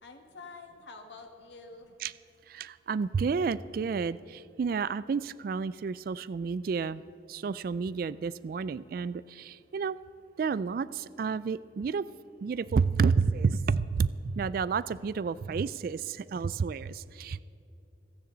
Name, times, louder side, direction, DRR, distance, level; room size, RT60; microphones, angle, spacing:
voice 1, 0.0-1.9, left 3 dB, 75° left, 4 dB, 1.8 m, -48 dB
voice 2, 2.5-7.0 7.3-10.0 10.4-12.1 12.4-17.4, right 5 dB, 50° right, 17 dB, 0.3 m, -30 dB
27.0 x 9.6 x 3.9 m, 2.8 s
head